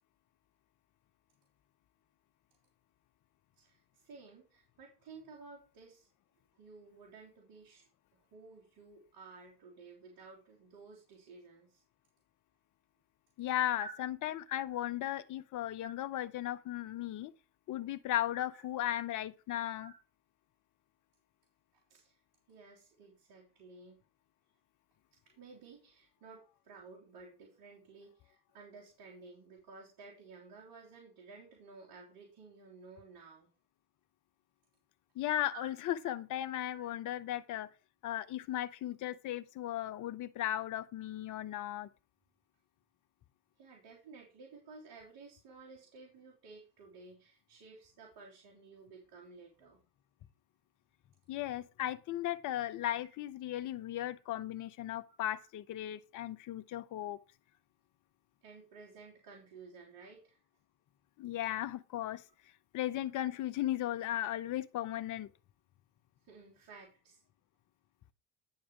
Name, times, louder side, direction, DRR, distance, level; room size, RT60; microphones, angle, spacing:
voice 1, 3.6-6.1 6.6-11.8 13.8-13.9 15.8-15.9 19.8-20.0 21.7-22.2 22.5-24.0 25.3-33.5 35.5-35.7 36.7-36.8 43.6-49.8 58.4-60.4 66.2-67.2, right 4 dB, 55° right, 3.6 m, -54 dB
voice 2, 13.4-17.3 17.7-19.9 35.2-37.7 38.0-41.9 51.3-57.2 61.2-62.2 62.7-65.3, left 13 dB, 45° left, 0.7 m, -36 dB
9.8 x 5.6 x 4.9 m
hypercardioid pair, 60°, 44 cm